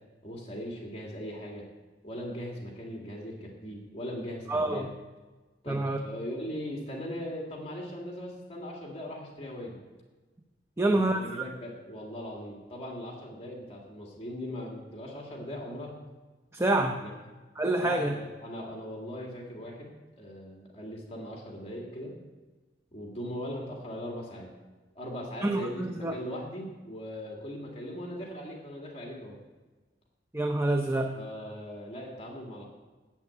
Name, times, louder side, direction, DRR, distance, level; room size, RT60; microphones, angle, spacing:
voice 1, 0.2-1.7 2.0-4.9 5.6-9.8 10.8-16.0 17.0-17.1 17.8-22.2 22.9-24.5 25.0-29.4 31.1-32.7, equal, 35° left, -1 dB, 2.3 m, -39 dB
voice 2, 4.5-4.9 5.7-6.0 10.8-11.2 16.5-17.0 17.6-18.1 25.4-26.2 30.3-31.2, right 2 dB, 15° right, 4 dB, 0.6 m, -27 dB
10.5 x 7.1 x 8.4 m, 1.3 s
head